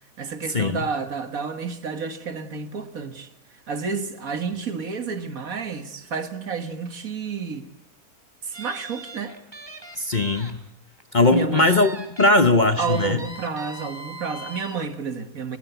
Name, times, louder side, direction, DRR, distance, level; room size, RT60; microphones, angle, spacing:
voice 1, 0.2-3.3 3.7-7.7 8.4-9.4 11.3-11.7 12.8-15.6, right 5 dB, 60° right, 2.1 m, -30 dB
sound 1, 8.5-10.5 10.9-11.0 11.6-12.4 12.8-14.8, right 1 dB, 15° right, 3.5 m, -39 dB
voice 2, 10.0-10.6 11.1-11.9 12.2-13.2, left 2 dB, 35° left, 1.0 m, -19 dB
29.5 x 16.5 x 8.2 m
omnidirectional pair, 1.6 m